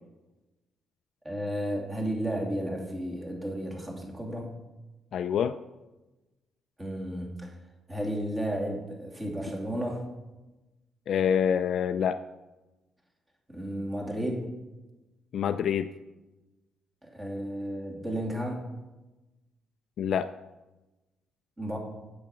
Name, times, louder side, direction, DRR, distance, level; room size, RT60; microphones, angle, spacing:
voice 1, 1.2-4.5 6.8-7.5 7.9-10.1 13.5-14.5 17.0-18.6 21.6-21.8, equal, 20° right, -1 dB, 2.7 m, -33 dB
voice 2, 5.1-5.5 11.1-12.2 15.3-15.9 20.0-20.3, left 8 dB, 65° left, 9 dB, 0.4 m, -26 dB
8.5 x 7.1 x 6.0 m, 1.1 s
cardioid pair, 90°, 0 cm